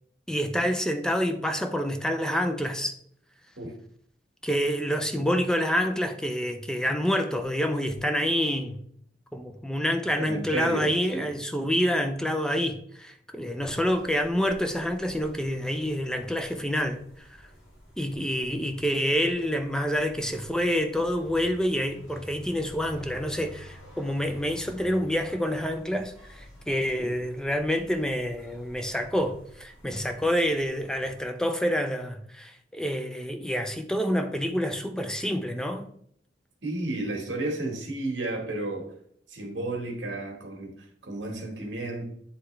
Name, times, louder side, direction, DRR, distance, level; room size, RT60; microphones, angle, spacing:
voice 1, 0.3-2.9 4.4-8.8 9.3-17.0 18.0-35.9, equal, 5° left, 0.5 m, -27 dB
voice 2, 10.2-11.3 27.0-27.1 36.6-38.9 39.3-42.0, right 2 dB, 65° right, 1.6 m, -32 dB
sound 1, 13.6-31.2, equal, 80° left, 2.8 m, -50 dB
9.7 x 3.3 x 3.3 m
head